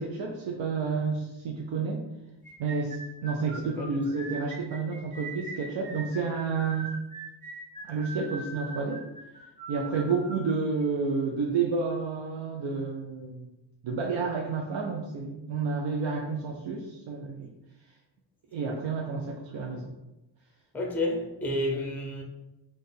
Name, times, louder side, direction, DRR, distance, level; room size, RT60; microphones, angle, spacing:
voice 1, 0.0-2.1 2.6-6.9 7.8-9.1 9.7-13.5 13.8-17.5 18.5-19.9, right 4 dB, 80° right, 0 dB, 0.6 m, -30 dB
sound 1, 2.4-10.5, right 3 dB, 15° right, 0.9 m, -41 dB
voice 2, 20.7-22.2, left 1 dB, 5° left, 1 dB, 0.5 m, -30 dB
4.4 x 2.4 x 3.3 m, 0.96 s
wide cardioid pair, 165°, 45 cm